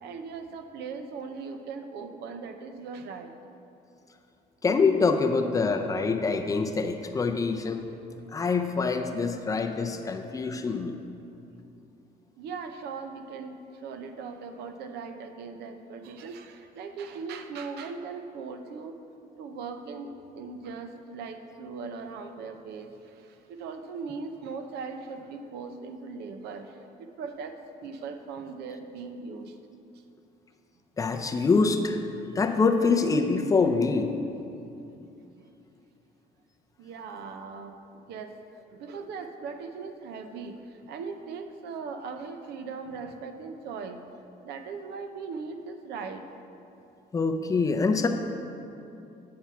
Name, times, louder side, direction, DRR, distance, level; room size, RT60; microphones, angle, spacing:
voice 1, 0.0-3.4 12.4-19.0 19.4-20.1 20.4-27.6 27.8-29.6 31.0-31.1 35.4-35.5 36.8-38.4 38.7-44.0 44.4-46.2, right 5 dB, 75° right, 6 dB, 0.7 m, -39 dB
voice 2, 4.6-7.9 8.3-11.0 31.0-32.0 32.4-34.1 47.1-48.1, left 4 dB, 20° left, 4 dB, 0.5 m, -25 dB
8.5 x 4.7 x 5.7 m, 2.8 s
cardioid pair, 110°, 17 cm